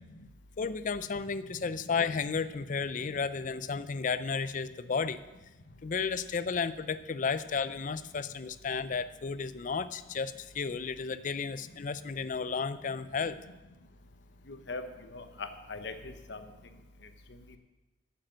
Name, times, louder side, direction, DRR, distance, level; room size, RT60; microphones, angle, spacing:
voice 1, 0.6-5.2 5.8-13.4, left 5 dB, 45° left, 14 dB, 0.4 m, -33 dB
voice 2, 14.5-14.8 15.1-16.4, left 3 dB, 65° left, 8 dB, 1.0 m, -40 dB
8.9 x 7.5 x 7.5 m, 1.1 s
head